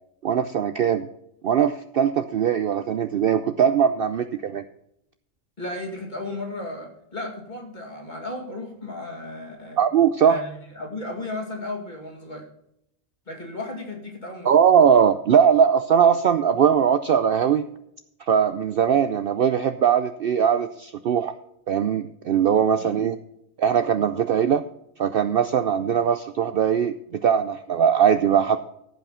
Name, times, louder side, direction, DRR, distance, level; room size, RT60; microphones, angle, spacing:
voice 1, 0.2-1.1 1.4-4.6 9.8-10.4 14.5-17.6 18.3-21.3 21.7-23.2 23.6-24.6 25.0-27.0 27.2-28.6, right 8 dB, 60° right, 11 dB, 0.6 m, -20 dB
voice 2, 5.6-9.8 10.2-12.5 13.3-14.5 22.7-22.9, left 2 dB, 35° left, 1 dB, 2.6 m, -34 dB
15.0 x 5.8 x 5.6 m, 0.77 s
omnidirectional pair, 1.3 m